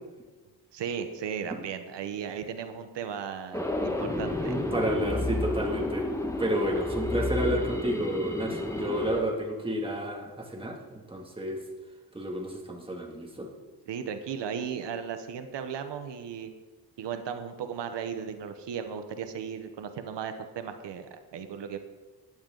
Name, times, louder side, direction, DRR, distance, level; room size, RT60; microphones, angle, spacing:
voice 1, 0.7-4.6 13.9-16.5 17.0-21.8, right 7 dB, 85° right, 8 dB, 1.0 m, -36 dB
sound 1, 3.5-9.2, left 1 dB, 5° left, 1.5 m, -31 dB
voice 2, 4.4-6.1 6.4-11.6 12.1-13.5, equal, 15° right, 0 dB, 2.3 m, -31 dB
15.5 x 10.5 x 3.9 m, 1.3 s
cardioid pair, 90°, 41 cm